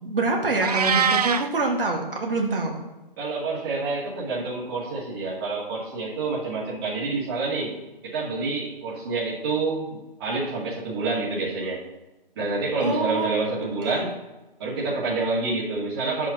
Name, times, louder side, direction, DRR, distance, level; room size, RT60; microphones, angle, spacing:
voice 1, 0.0-2.8 12.8-13.5 13.9-14.0, right 3 dB, 70° right, 0 dB, 1.8 m, -25 dB
Meow, 0.6-1.5, right 7 dB, 45° right, 0.5 m, -22 dB
voice 2, 3.2-7.8 8.0-11.8 12.4-14.2 14.6-16.3, right 3 dB, 25° right, -6 dB, 2.0 m, -28 dB
11.0 x 7.5 x 2.9 m, 1.0 s
hypercardioid pair, 155°, 29 cm